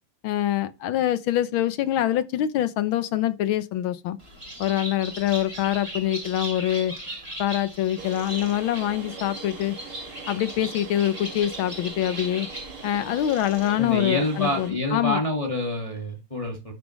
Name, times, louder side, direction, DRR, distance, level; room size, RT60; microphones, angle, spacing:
voice 1, 0.2-4.2 4.6-6.9 7.4-9.8 10.3-12.5 12.8-15.2, left 12 dB, 75° left, 1.6 m, -25 dB
Bird, 4.2-13.9, right 1 dB, 15° right, 3.0 m, -39 dB
sound 1, 8.0-14.7, right 4 dB, 75° right, 3.1 m, -41 dB
voice 2, 13.8-16.7, left 1 dB, 15° left, 1.9 m, -27 dB
11.5 x 6.9 x 3.2 m
omnidirectional pair, 2.3 m